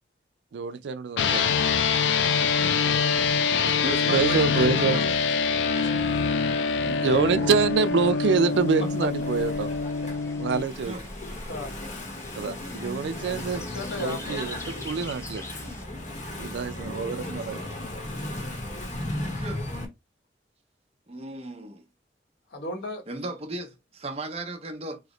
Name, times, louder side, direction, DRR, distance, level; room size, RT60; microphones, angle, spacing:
voice 1, 0.5-1.7 3.6-3.7 4.1-5.0 5.8-6.0 6.9-9.7 10.4-11.0 12.4-13.6 14.0-15.4 16.4-17.6, right 5 dB, 80° right, 0.4 m, -26 dB
sound 1, 1.2-10.6, left 5 dB, 90° left, 0.4 m, -25 dB
sound 2, 1.2-15.8, left 2 dB, 15° left, 0.5 m, -43 dB
voice 2, 2.8-3.2 8.8-9.1 9.4-9.7 10.0-10.1 11.5-11.8 13.4-15.2 18.4-18.6 22.5-23.0, left 1 dB, 75° left, 0.9 m, -37 dB
voice 3, 3.8-5.2 7.3-7.5 10.8-11.0 19.3-19.6 21.1-21.8 23.1-25.0, right 2 dB, 35° right, 0.7 m, -35 dB
Engine / Mechanisms, 7.7-19.9, left 1 dB, 45° left, 0.8 m, -36 dB
3.0 x 2.0 x 3.7 m
head